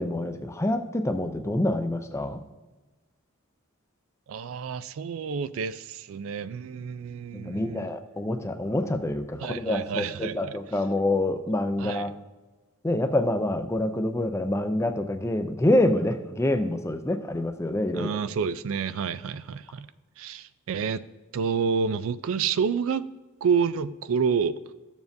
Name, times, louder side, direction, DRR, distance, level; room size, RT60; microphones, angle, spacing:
voice 1, 0.0-2.4 7.3-12.1 12.8-18.2, left 1 dB, 15° left, 8 dB, 0.4 m, -26 dB
voice 2, 4.3-7.9 9.4-10.6 11.8-12.1 17.9-19.9 20.2-21.0 21.3-23.1 23.4-24.6, right 6 dB, 65° right, 14 dB, 0.3 m, -29 dB
14.0 x 7.1 x 2.6 m, 1.2 s
head